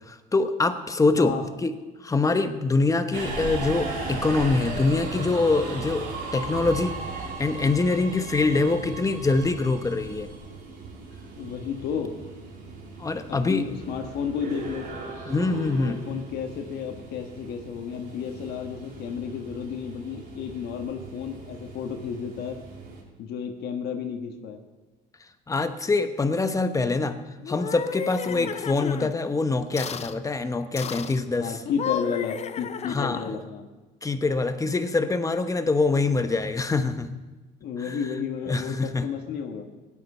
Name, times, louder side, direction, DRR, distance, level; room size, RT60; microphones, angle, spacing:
voice 1, 0.1-1.3 1.6-1.7 2.0-10.3 13.0-13.7 15.3-16.0 25.5-27.2 27.5-31.6 32.9-33.2 34.0-37.1 37.9-38.0 38.5-39.1, left 3 dB, 20° left, 9 dB, 1.0 m, -24 dB
Subway metro underground, 3.1-23.0, right 3 dB, 70° right, 4.0 m, -37 dB
voice 2, 11.4-12.2 13.3-14.9 15.7-22.6 23.2-24.6 28.3-28.5 31.3-33.7 37.6-39.7, left 7 dB, 75° left, 4 dB, 1.5 m, -32 dB
sound 1, 27.4-29.1 29.8-30.2 30.8-31.2 31.6-33.4, left 8 dB, 40° left, 0.7 m, -33 dB
16.5 x 11.0 x 5.6 m, 1.2 s
cardioid pair, 110°, 17 cm